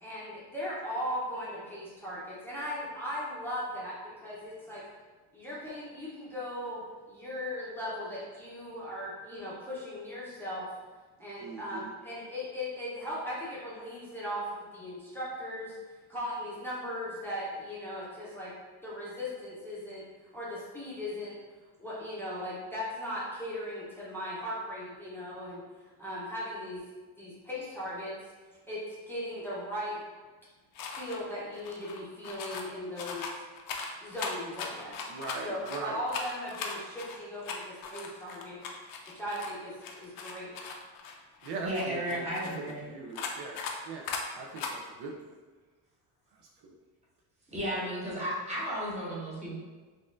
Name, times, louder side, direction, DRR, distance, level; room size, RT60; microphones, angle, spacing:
voice 1, 0.0-3.9 4.2-4.8 5.3-10.7 11.2-15.8 16.1-18.5 18.8-20.0 20.3-21.4 21.8-25.6 26.0-26.8 27.2-28.1 28.7-30.0 30.9-33.4 34.0-35.1 35.4-38.6 39.1-40.6, left 1 dB, 5° left, -9 dB, 0.7 m, -38 dB
voice 2, 11.4-11.8 35.1-36.0 41.4-42.3 42.6-43.6 43.9-45.3, right 3 dB, 65° right, 0 dB, 0.5 m, -40 dB
sound 1, 30.8-31.2 31.5-32.7 33.0-35.8 36.1-39.6 39.8-42.7 43.2-43.8 44.1-44.2 44.6-44.7, left 5 dB, 50° left, 0.5 m, -39 dB
voice 3, 41.6-42.9 47.5-49.6, equal, 15° right, -7 dB, 1.0 m, -34 dB
3.9 x 2.5 x 2.5 m, 1.3 s
cardioid pair, 140°, 43 cm